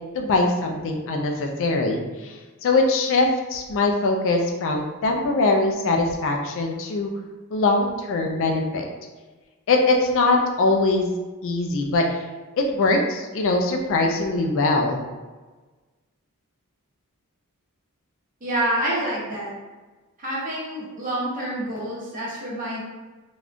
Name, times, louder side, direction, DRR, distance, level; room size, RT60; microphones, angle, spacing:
voice 1, 0.1-7.1 7.5-8.8 9.7-11.2 11.4-12.2 12.6-15.0, left 2 dB, 60° left, 2 dB, 0.4 m, -22 dB
voice 2, 18.4-19.5 20.2-22.8, right 1 dB, 40° right, -6 dB, 0.9 m, -27 dB
3.4 x 2.3 x 2.5 m, 1.3 s
head